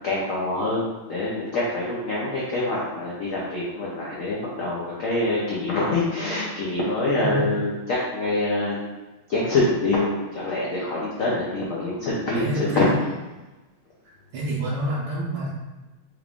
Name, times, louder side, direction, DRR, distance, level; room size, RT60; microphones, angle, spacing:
voice 1, 0.0-8.9 9.3-12.8, left 2 dB, 90° left, -6 dB, 0.7 m, -25 dB
voice 2, 12.3-12.9 14.3-15.5, right 1 dB, 85° right, -8 dB, 1.8 m, -27 dB
4.6 x 2.4 x 3.5 m, 1.1 s
omnidirectional pair, 2.4 m